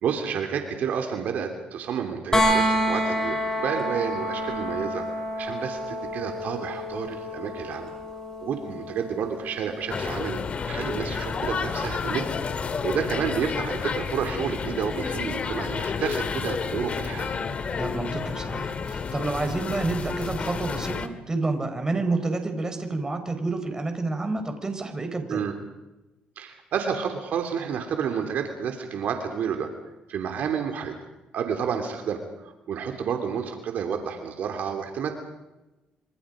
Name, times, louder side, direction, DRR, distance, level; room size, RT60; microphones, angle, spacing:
voice 1, 0.0-7.9 8.4-10.4 10.6-12.4 12.8-17.3 25.3-25.5 26.4-29.7 30.1-30.9 31.3-32.2 32.7-35.1, right 7 dB, 70° right, 5 dB, 3.1 m, -30 dB
sound 1, 2.3-14.1 16.1-16.2, equal, 20° left, 6.5 m, -30 dB
sound 2, 9.9-21.1, left 5 dB, 45° left, 2.1 m, -30 dB
voice 2, 10.8-11.2 17.8-25.5, right 3 dB, 20° right, 6 dB, 4.7 m, -29 dB
26.5 x 26.5 x 5.2 m, 1.0 s
cardioid pair, 80°, 3 cm